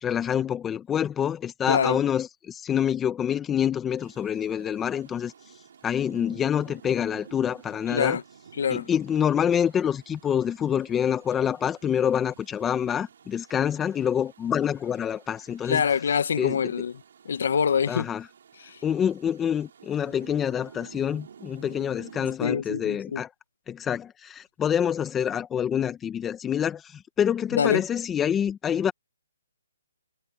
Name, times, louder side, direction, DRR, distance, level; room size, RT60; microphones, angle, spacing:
voice 1, 0.0-5.3 5.8-8.2 8.7-15.8 16.4-16.7 17.9-18.2 18.8-23.3 23.7-28.9, left 9 dB, 10° left, 1.2 m, -26 dB
voice 2, 1.7-2.0 7.9-8.2 8.6-8.9 15.6-16.9 17.2-18.1 18.6-18.8 22.4-23.2 27.6-27.8, left 7 dB, 55° left, 1.1 m, -25 dB
Rain, 4.0-22.4, right 7 dB, 55° right, 5.5 m, -51 dB
hypercardioid pair, 165°, 0 cm